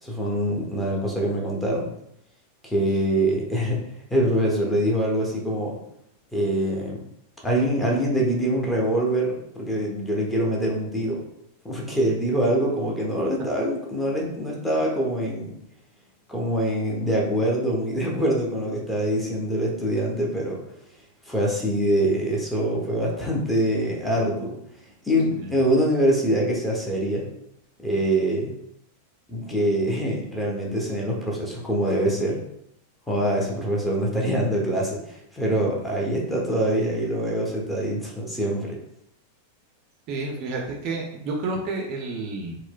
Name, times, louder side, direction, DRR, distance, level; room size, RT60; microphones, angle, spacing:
voice 1, 0.0-1.9 2.6-3.8 4.1-5.8 6.3-7.0 7.4-11.2 11.6-15.6 16.3-20.6 21.3-24.6 25.0-27.2 27.8-28.5 29.3-32.5 33.1-38.8, right 1 dB, 5° left, -2 dB, 0.7 m, -24 dB
voice 2, 40.1-42.6, right 3 dB, 40° right, 1 dB, 0.5 m, -30 dB
4.1 x 2.1 x 2.2 m, 0.75 s
figure-of-eight pair, 90°, 0 cm